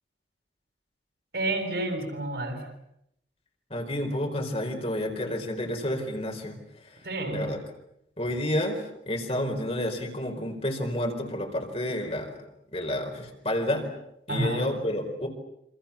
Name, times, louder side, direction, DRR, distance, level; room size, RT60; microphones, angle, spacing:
voice 1, 1.3-2.7 7.0-7.5 14.3-14.7, right 1 dB, 60° right, 5 dB, 7.7 m, -30 dB
voice 2, 3.7-7.6 8.2-12.4 12.7-13.9 14.3-15.3, left 1 dB, 35° left, 3 dB, 4.5 m, -30 dB
28.5 x 26.5 x 7.2 m, 0.78 s
head